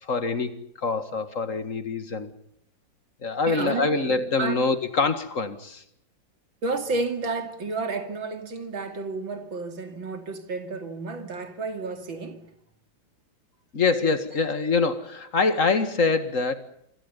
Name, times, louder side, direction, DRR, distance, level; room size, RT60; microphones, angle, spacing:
voice 1, 0.0-2.3 3.2-5.8 13.7-16.6, left 4 dB, 40° left, 2.3 m, -25 dB
voice 2, 3.5-4.7 6.6-12.5, right 3 dB, 80° right, 3.5 m, -31 dB
27.0 x 26.0 x 5.5 m
omnidirectional pair, 2.1 m